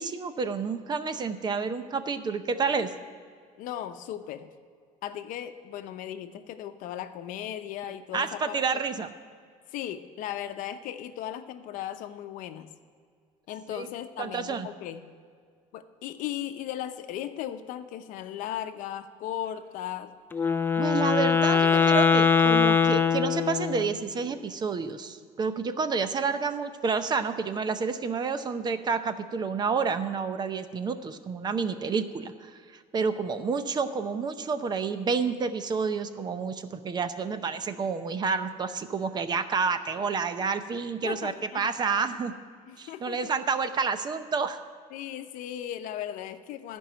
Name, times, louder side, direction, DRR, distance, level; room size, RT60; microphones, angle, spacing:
voice 1, 0.0-2.9 8.1-9.1 13.7-13.9 14.2-14.7 20.8-32.6 32.9-42.3 42.8-44.6, right 5 dB, 30° right, 10 dB, 0.7 m, -29 dB
voice 2, 3.6-4.5 5.0-8.6 9.7-12.7 13.5-15.1 15.7-20.1 21.6-21.9 41.0-41.7 42.7-43.3 44.9-46.8, left 11 dB, 70° left, 9 dB, 0.8 m, -37 dB
Wind instrument woodwind instrument, 20.3-23.9, left 6 dB, 15° left, 0.5 m, -22 dB
14.5 x 5.4 x 8.9 m, 2.1 s
cardioid pair, 135°, 14 cm